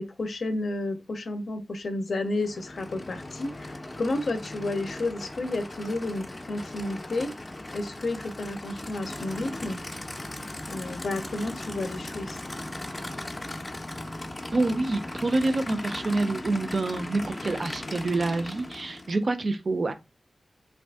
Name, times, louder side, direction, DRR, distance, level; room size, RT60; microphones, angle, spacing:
voice 1, 0.0-7.5 7.7-9.8 10.7-12.4, left 2 dB, 75° left, 0.6 m, -31 dB
Aircraft / Idling, 2.3-19.2, left 1 dB, 25° left, 0.4 m, -38 dB
voice 2, 14.5-19.9, right 2 dB, 50° right, 0.4 m, -27 dB
2.6 x 2.4 x 3.4 m
wide cardioid pair, 115°, 0 cm